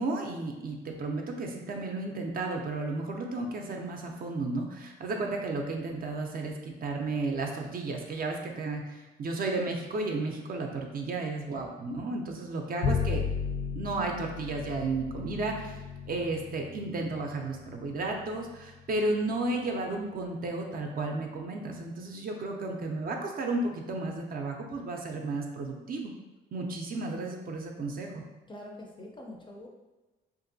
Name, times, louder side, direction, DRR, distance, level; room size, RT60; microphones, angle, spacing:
voice 1, 0.0-13.2 13.8-15.8 16.1-26.1 26.5-28.2, right 2 dB, 45° right, 2 dB, 0.5 m, -33 dB
Bowed string instrument, 12.8-19.3, left 6 dB, 65° left, 0.7 m, -35 dB
voice 2, 28.5-29.7, left 1 dB, 25° left, 0 dB, 0.5 m, -44 dB
2.8 x 2.6 x 2.6 m, 1.1 s
cardioid pair, 90°, 20 cm